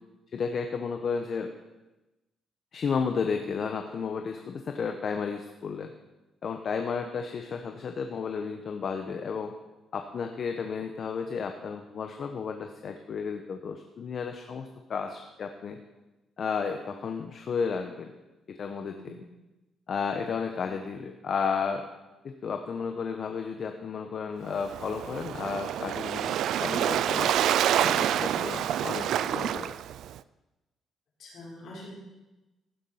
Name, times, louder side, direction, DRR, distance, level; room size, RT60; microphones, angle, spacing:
voice 1, 0.3-1.5 2.7-5.9 6.4-9.5 9.9-15.8 16.4-18.1 18.5-19.0 19.9-21.9 22.2-26.3 26.6-27.4 27.7-29.7, left 5 dB, 55° left, 5 dB, 0.9 m, -33 dB
voice 2, 18.8-19.1 31.2-31.9, left 1 dB, 70° left, -5 dB, 5.1 m, -45 dB
Waves surf, 24.5-30.2, right 11 dB, 75° right, 0.3 m, -28 dB
16.0 x 7.2 x 5.6 m, 1.1 s
cardioid pair, 90°, 0 cm